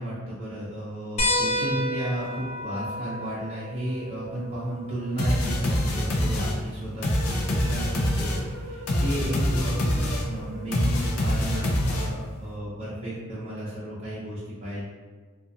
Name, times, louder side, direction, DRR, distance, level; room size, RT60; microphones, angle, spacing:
voice 1, 0.0-14.8, right 1 dB, 30° right, -9 dB, 0.5 m, -33 dB
sound 1, 1.2-6.3 7.8-7.9 9.6-9.7, left 1 dB, 30° left, 0.4 m, -31 dB
sound 2, 5.2-12.4, left 1 dB, 90° left, 0.5 m, -26 dB
sound 3, 7.1-11.4, right 2 dB, 90° right, 0.3 m, -43 dB
2.4 x 2.3 x 2.6 m, 1.5 s
head